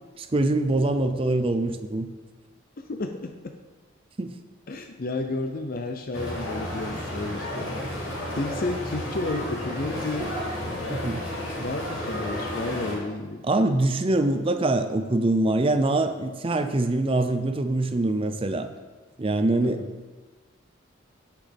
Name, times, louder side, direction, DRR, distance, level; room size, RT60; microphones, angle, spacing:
voice 1, 0.2-2.1 4.2-4.3 10.9-11.2 13.4-18.7 19.2-19.8, right 2 dB, 25° right, 8 dB, 0.5 m, -24 dB
voice 2, 2.8-3.5 4.7-10.4 10.6-11.0 11.6-13.4 19.6-19.9, left 2 dB, 45° left, 5 dB, 0.5 m, -32 dB
sound 1, 6.1-13.0, left 1 dB, 75° left, 2.8 m, -32 dB
16.5 x 5.9 x 3.5 m, 1.3 s
head